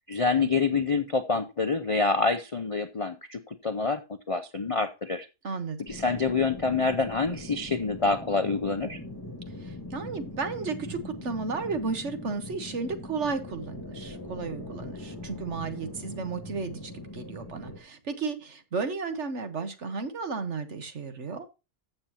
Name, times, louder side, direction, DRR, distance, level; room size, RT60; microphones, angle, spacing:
voice 1, 0.1-4.0 4.3-5.3 5.9-9.0, left 4 dB, 60° left, 0.3 m, -27 dB
voice 2, 5.4-5.8 9.6-21.5, right 4 dB, 50° right, 1.5 m, -33 dB
Wailing Winds, 5.9-17.8, left 1 dB, 15° left, 2.4 m, -41 dB
14.5 x 7.0 x 2.9 m
omnidirectional pair, 1.7 m